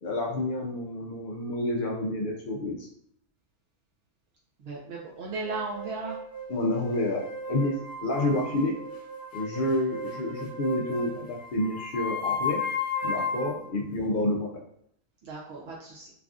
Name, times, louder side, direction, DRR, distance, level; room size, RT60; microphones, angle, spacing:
voice 1, 0.0-2.9 6.5-7.8 8.0-8.8 9.3-12.6 13.0-14.5, left 1 dB, 90° left, 0 dB, 0.4 m, -29 dB
voice 2, 4.6-6.2 15.2-16.1, right 3 dB, 65° right, -3 dB, 0.6 m, -36 dB
sound 1, 5.4-13.6, left 3 dB, 20° left, 0.7 m, -34 dB
3.2 x 2.4 x 2.4 m, 0.69 s
omnidirectional pair, 1.5 m